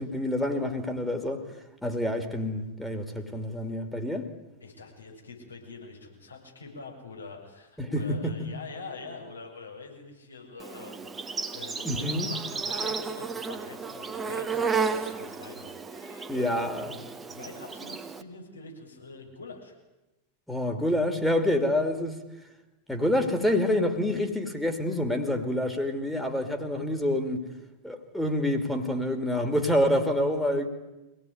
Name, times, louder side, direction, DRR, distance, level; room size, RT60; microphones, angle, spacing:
voice 1, 0.0-1.5 1.8-4.3 7.8-8.3 11.8-12.3 16.3-16.9 20.5-22.2 22.9-27.4 27.8-30.7, left 1 dB, 5° left, 5 dB, 3.0 m, -27 dB
voice 2, 4.6-16.7 17.3-19.8, left 4 dB, 75° left, 1 dB, 7.1 m, -45 dB
Insect, 10.6-18.2, right 5 dB, 15° right, 1.8 m, -33 dB
25.5 x 18.5 x 9.6 m, 1.0 s
figure-of-eight pair, 90°, 0 cm